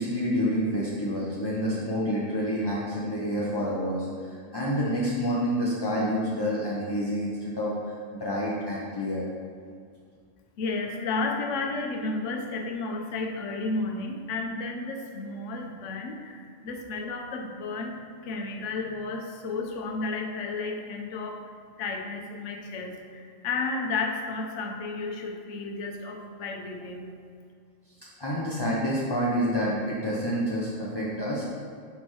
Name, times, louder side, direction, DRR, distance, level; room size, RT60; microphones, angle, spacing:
voice 1, 0.0-7.7 8.1-9.3 28.2-31.4, equal, 25° left, -6 dB, 0.6 m, -28 dB
voice 2, 10.6-21.5 21.8-27.1, left 3 dB, 65° left, 2 dB, 1.0 m, -32 dB
5.7 x 4.2 x 4.7 m, 2.2 s
omnidirectional pair, 1.4 m